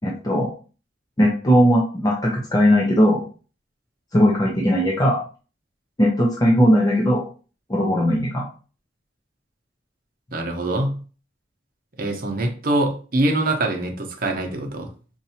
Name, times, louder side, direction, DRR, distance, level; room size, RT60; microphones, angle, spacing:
voice 1, 0.0-0.5 1.2-3.2 4.1-5.2 6.0-7.2 7.7-8.4, equal, 20° left, -2 dB, 0.6 m, -18 dB
voice 2, 10.3-11.0 12.0-14.9, right 1 dB, 55° right, 3 dB, 0.8 m, -24 dB
4.5 x 2.6 x 2.8 m, 0.37 s
head